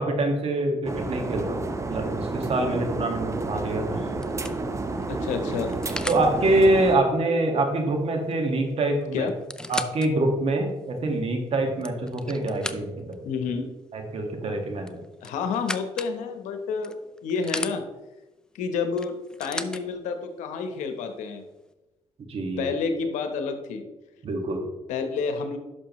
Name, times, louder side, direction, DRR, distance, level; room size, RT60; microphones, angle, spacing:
voice 1, 0.0-4.0 6.1-9.3 9.7-13.2 13.9-15.0 22.3-22.7 24.2-24.6, right 2 dB, 55° right, 3 dB, 1.9 m, -25 dB
sound 1, 0.8-7.0, right 3 dB, 25° right, 0.9 m, -30 dB
sound 2, 4.2-6.3 8.3-8.4 8.7-8.8 9.3-10.1 10.7-10.8 11.5-13.1 14.8-16.1 16.8-17.8 19.0-19.8 20.8-20.9, left 1 dB, 5° left, 0.5 m, -36 dB
voice 2, 5.1-5.7 9.1-9.3 13.2-13.7 15.2-16.9 17.2-17.8 18.5-19.1 19.4-21.4 22.6-23.8 24.9-25.6, left 5 dB, 85° left, 6 dB, 1.1 m, -29 dB
11.0 x 6.4 x 3.2 m, 1.1 s
cardioid pair, 85°, 12 cm